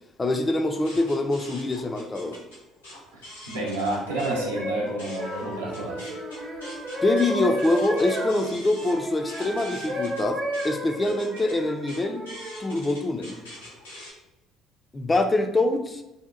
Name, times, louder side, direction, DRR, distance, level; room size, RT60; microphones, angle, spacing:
voice 1, 0.2-2.4 7.0-12.2 12.6-13.4 14.9-16.0, left 2 dB, 20° left, 6 dB, 0.3 m, -25 dB
sound 1, 0.7-4.4 4.7-14.1, left 1 dB, 85° left, 0.6 m, -44 dB
voice 2, 3.1-6.1, right 2 dB, 85° right, -5 dB, 0.6 m, -31 dB
sound 2, 3.9-9.4 9.9-12.7 13.4-13.7, equal, 55° right, 0.9 m, -33 dB
sound 3, 5.2-10.3, right 3 dB, 30° right, 0.5 m, -37 dB
2.7 x 2.1 x 2.4 m, 0.94 s
figure-of-eight pair, 55°, 0 cm